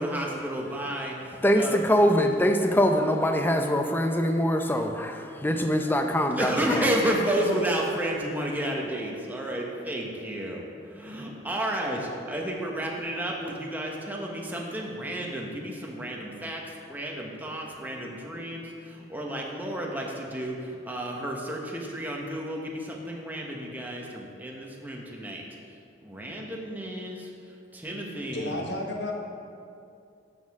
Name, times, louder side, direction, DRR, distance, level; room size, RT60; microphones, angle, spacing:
voice 1, 0.0-1.8 6.4-25.4 26.0-27.3 27.7-28.6, right 1 dB, 10° right, -1 dB, 1.1 m, -31 dB
voice 2, 1.4-6.9, equal, 10° left, 5 dB, 0.6 m, -23 dB
voice 3, 28.3-29.1, left 1 dB, 70° left, 0 dB, 1.3 m, -32 dB
12.5 x 6.5 x 3.6 m, 2.5 s
head